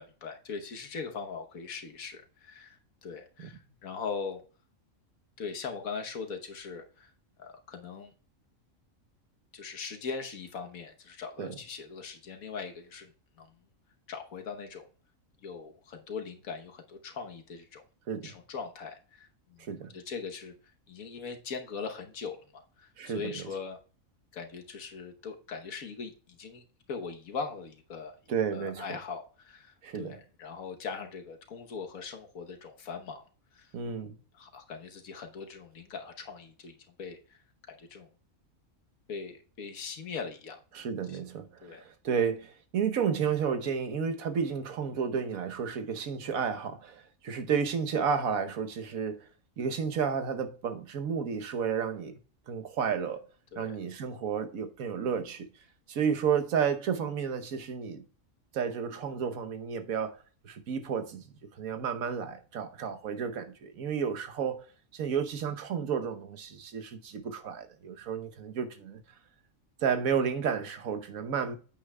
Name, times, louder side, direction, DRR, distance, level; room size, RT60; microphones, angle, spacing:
voice 1, 0.0-4.4 5.4-7.1 7.4-8.1 9.5-13.1 13.4-13.6 14.1-14.8 15.4-17.8 18.2-19.7 19.9-20.5 20.9-23.8 24.3-33.3 33.5-33.7 34.3-38.1 39.1-40.6 41.1-41.2 41.6-41.8 53.5-53.8 62.8-62.9, left 5 dB, 90° left, 1.5 m, -41 dB
voice 2, 19.6-19.9 23.0-23.3 28.3-29.0 29.8-30.2 33.7-34.2 40.7-49.3 49.6-52.2 52.5-53.2 53.6-55.5 55.9-58.0 58.5-60.2 60.4-61.2 61.5-64.6 64.9-69.0 69.8-71.6, right 7 dB, 85° right, 1.4 m, -32 dB
9.0 x 8.6 x 2.3 m
omnidirectional pair, 1.4 m